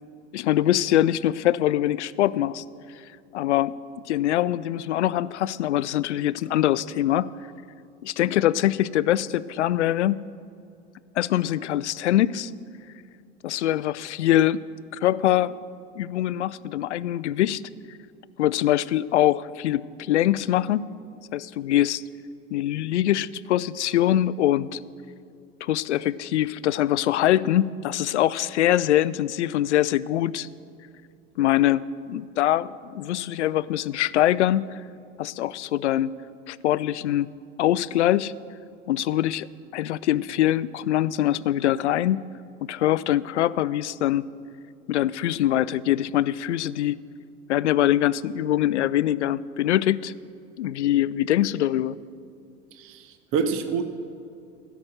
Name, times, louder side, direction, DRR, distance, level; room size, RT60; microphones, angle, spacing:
voice 1, 0.3-2.6 3.3-3.7 4.1-7.3 8.0-10.2 11.2-12.5 13.4-14.6 14.9-15.5 16.0-17.6 18.4-20.9 21.3-22.0 22.5-24.8 25.6-30.5 31.4-34.7 35.2-36.1 36.5-37.3 37.6-38.3 38.9-39.5 39.7-42.2 42.6-44.2 44.9-47.0 47.5-50.1 50.6-52.0, left 13 dB, 70° left, 19 dB, 0.5 m, -23 dB
voice 2, 52.8-53.8, right 6 dB, 35° right, 9 dB, 0.9 m, -27 dB
15.5 x 6.1 x 6.5 m, 2.4 s
figure-of-eight pair, 85°, 37 cm